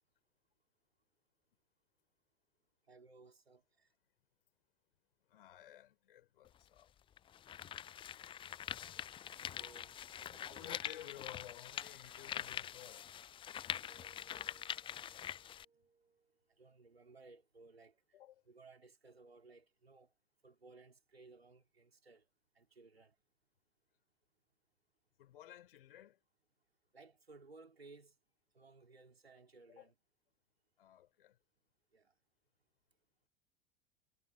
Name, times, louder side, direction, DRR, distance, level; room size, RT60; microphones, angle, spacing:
voice 1, 2.9-3.9 8.8-10.7 16.6-18.0 18.5-20.1 20.4-22.2 22.5-23.1 26.9-28.1 28.5-29.9 31.9-32.1, right 3 dB, 85° right, 3.4 m, -60 dB
voice 2, 5.3-6.9 10.4-13.1 18.1-18.4 25.2-26.2 29.8-29.9 30.8-31.4, left 12 dB, 65° left, 5.4 m, -54 dB
sound 1, 6.4-6.5 7.2-15.6, left 10 dB, 15° left, 0.4 m, -44 dB
Piano, 9.6-16.3, right 5 dB, 15° right, 7.7 m, -70 dB
figure-of-eight pair, 80°, 30 cm